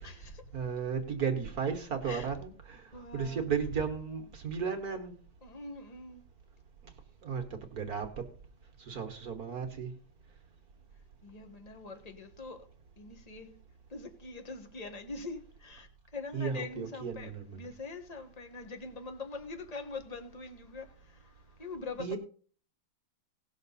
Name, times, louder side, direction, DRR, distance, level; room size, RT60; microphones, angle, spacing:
voice 1, 0.0-0.4 2.0-2.3 2.9-3.5 5.4-6.2 11.2-12.6 13.0-13.5 13.9-22.2, left 3 dB, 20° left, 1.3 m, -43 dB
voice 2, 0.5-5.1 7.2-7.4 7.7-8.2 8.8-9.9 16.3-17.6 22.0-22.2, right 6 dB, 50° right, 1.5 m, -34 dB
18.0 x 6.5 x 4.0 m
omnidirectional pair, 2.3 m